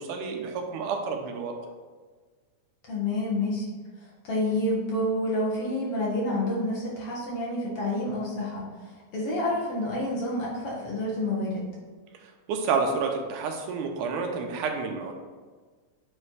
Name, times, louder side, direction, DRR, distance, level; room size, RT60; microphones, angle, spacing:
voice 1, 0.0-1.5 12.2-15.1, right 5 dB, 85° right, 3 dB, 2.3 m, -29 dB
voice 2, 2.9-3.7 4.0-11.6, left 1 dB, 55° left, -6 dB, 2.1 m, -29 dB
8.8 x 3.3 x 4.7 m, 1.4 s
omnidirectional pair, 3.6 m